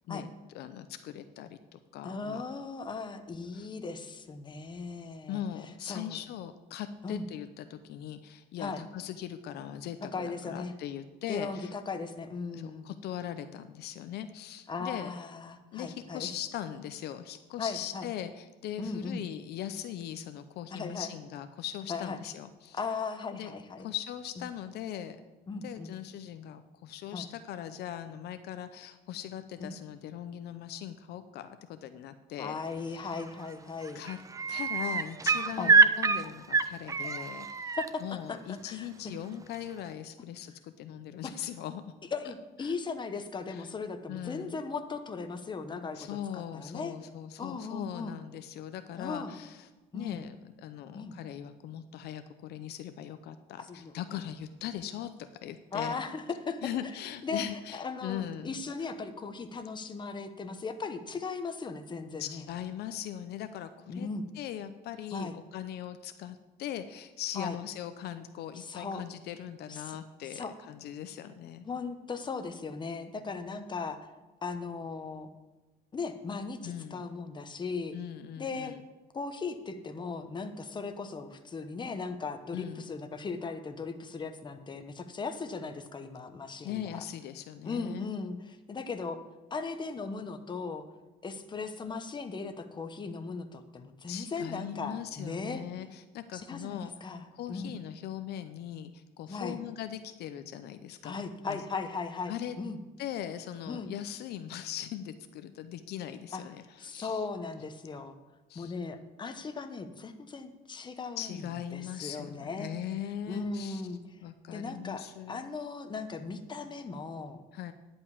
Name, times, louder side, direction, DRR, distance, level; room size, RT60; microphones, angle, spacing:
voice 1, 0.5-2.4 3.5-3.6 5.3-11.7 12.5-15.1 15.7-22.8 23.3-23.5 23.8-25.2 25.6-32.6 32.9-33.2 33.9-34.2 34.5-41.8 42.6-42.7 43.5-43.7 44.1-44.6 45.9-56.0 56.6-58.6 62.2-64.1 64.3-71.7 76.6-77.1 77.9-78.8 82.5-82.9 86.6-88.1 94.1-101.6 102.3-102.6 103.0-107.2 108.5-108.7 111.2-113.8 114.2-115.5 117.5-117.7, left 10 dB, 75° left, 10 dB, 0.6 m, -40 dB
voice 2, 2.0-5.4 5.8-6.2 7.0-7.3 8.6-8.8 10.1-10.7 11.3-12.9 14.7-16.3 17.6-18.1 18.8-19.2 20.7-21.1 21.9-22.2 22.8-23.9 25.5-25.9 27.1-27.3 29.6-29.7 32.4-34.0 35.6-35.7 37.8-38.0 38.3-38.9 41.2-41.3 42.1-46.9 47.4-48.1 48.9-49.4 49.9-50.2 50.9-51.2 53.6-53.9 55.7-56.6 57.2-57.4 57.7-62.4 63.9-64.3 65.1-65.4 67.4-67.6 68.6-69.0 69.7-70.0 70.3-70.5 71.6-74.0 74.4-75.3 75.9-77.9 78.4-78.8 79.1-87.0 87.6-89.2 89.5-90.8 91.2-95.6 96.3-97.7 99.3-99.6 101.0-102.8 103.7-103.9 106.3-106.4 106.8-108.2 108.5-111.4 111.7-112.7 113.3-114.0 114.5-117.4, left 4 dB, 25° left, 7 dB, 1.0 m, -37 dB
sound 1, 33.2-33.5 33.8-37.9 39.5-39.6, right 4 dB, 20° right, 0.5 m, -26 dB
10.5 x 5.3 x 8.5 m, 1.2 s
cardioid pair, 110°, 17 cm